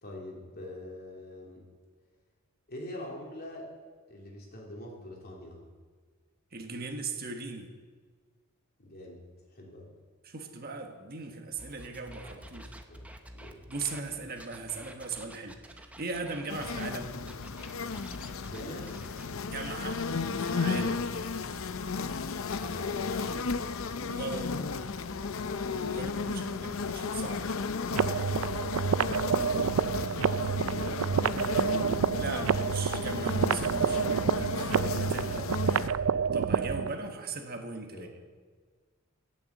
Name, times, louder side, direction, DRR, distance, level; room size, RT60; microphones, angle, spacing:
voice 1, 0.0-1.6 2.7-3.7 4.1-5.6 8.8-9.2 9.5-9.9 12.3-12.4 12.9-13.0 13.3-13.6 18.4-18.9 20.6-21.0 22.3-23.5 26.2-26.8 30.0-32.2 37.9-38.1, left 1 dB, 45° left, -2 dB, 3.3 m, -44 dB
voice 2, 6.5-7.7 10.2-12.7 13.7-15.6 16.0-17.1 19.4-20.0 20.4-21.0 24.1-24.5 25.8-27.5 32.2-38.3, right 3 dB, 45° right, 3 dB, 1.4 m, -39 dB
sound 1, 11.6-16.9 17.2-19.4, right 1 dB, 5° right, 1.0 m, -49 dB
sound 2, 16.5-35.9, left 4 dB, 70° left, 0.6 m, -34 dB
sound 3, 27.9-36.9, right 6 dB, 80° right, 0.4 m, -28 dB
17.0 x 7.2 x 7.3 m, 1.5 s
head